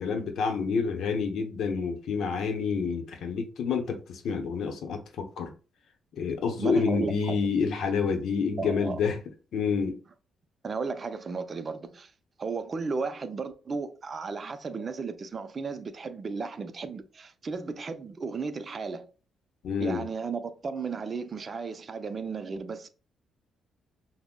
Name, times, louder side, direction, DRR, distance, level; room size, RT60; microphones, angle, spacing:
voice 1, 0.0-5.5 6.2-9.2 9.5-10.0 19.6-20.1, left 5 dB, 70° left, 0.7 m, -28 dB
voice 2, 6.6-7.4 8.6-9.0 10.6-12.1 12.4-19.1 19.8-22.9, right 4 dB, 40° right, 0.4 m, -34 dB
5.8 x 2.1 x 2.2 m
cardioid pair, 90°, 0 cm